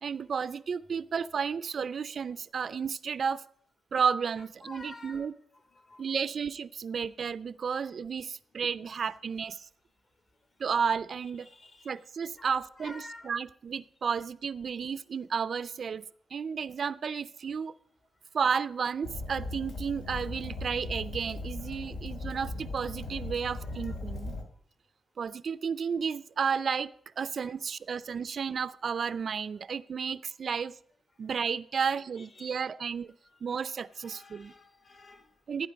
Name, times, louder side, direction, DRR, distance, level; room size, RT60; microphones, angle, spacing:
voice 1, 0.0-3.4 3.9-5.3 6.0-9.7 10.6-11.5 11.8-16.0 16.3-17.7 18.3-24.3 25.2-26.9 27.2-30.7 31.2-33.1 33.4-34.5 35.5-35.7, right 6 dB, 50° right, 16 dB, 0.4 m, -32 dB
voice 2, 4.6-5.3 5.7-6.1 11.4-11.9 12.4-12.5 12.8-13.3 23.6-23.9 27.4-27.5 31.8-32.7 33.9-35.3 35.6-35.7, left 2 dB, 40° left, 8 dB, 1.6 m, -50 dB
Fire, 19.0-24.4, left 2 dB, 80° left, 2.0 m, -38 dB
15.0 x 9.4 x 5.1 m, 0.62 s
cardioid pair, 120°, 0 cm